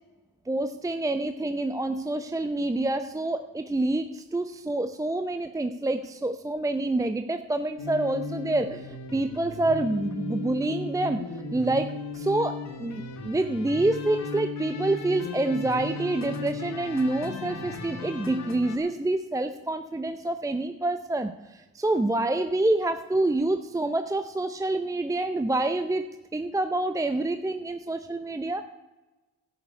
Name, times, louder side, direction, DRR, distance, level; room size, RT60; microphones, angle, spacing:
voice 1, 0.5-11.2 11.5-26.0 26.3-28.7, right 2 dB, 10° right, 9 dB, 0.7 m, -27 dB
sound 1, 7.8-18.8, left 3 dB, 60° left, 2.1 m, -36 dB
12.0 x 7.1 x 9.5 m, 1.1 s
cardioid pair, 90°, 30 cm